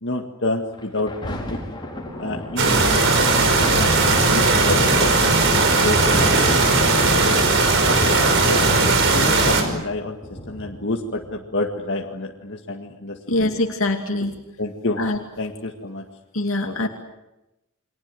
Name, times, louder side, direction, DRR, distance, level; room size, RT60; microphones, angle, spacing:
voice 1, 0.0-1.6 2.2-8.6 9.1-10.2 10.5-13.5 14.6-15.0 15.4-16.1 16.6-16.7, left 2 dB, 55° left, 1 dB, 2.0 m, -29 dB
Thunder, 0.7-11.7 12.4-12.5, left 1 dB, 20° left, 5.1 m, -34 dB
sound 1, 2.6-9.6, right 3 dB, 60° right, 5.4 m, -17 dB
voice 2, 13.3-14.4 15.0-15.2 16.3-16.9, left 2 dB, 75° left, 3 dB, 2.6 m, -23 dB
29.5 x 23.5 x 7.8 m, 0.95 s
head